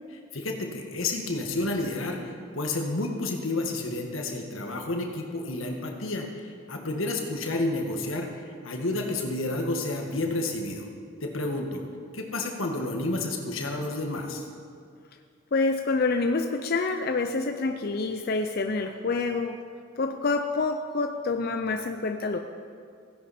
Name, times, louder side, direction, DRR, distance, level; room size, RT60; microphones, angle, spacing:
voice 1, 0.3-2.2 2.5-8.3 8.6-10.9 11.2-11.8 12.1-14.4, left 2 dB, 70° left, 1 dB, 1.6 m, -30 dB
voice 2, 15.5-19.6 20.0-22.4, left 3 dB, 45° left, 5 dB, 0.5 m, -27 dB
16.5 x 10.0 x 4.3 m, 2.3 s
head